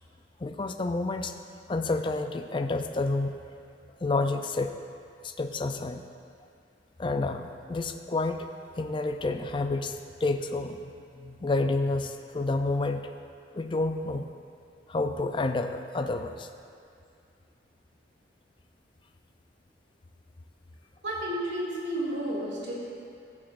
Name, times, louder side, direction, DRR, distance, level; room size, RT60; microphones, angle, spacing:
voice 1, 0.4-1.3 1.7-3.3 4.0-4.7 5.2-6.0 7.0-8.5 8.7-13.0 13.5-14.3 14.9-16.5, left 2 dB, 25° left, 7 dB, 0.4 m, -29 dB
voice 2, 21.0-22.7, right 1 dB, 75° right, -6 dB, 2.4 m, -31 dB
15.0 x 7.3 x 2.5 m, 2.4 s
head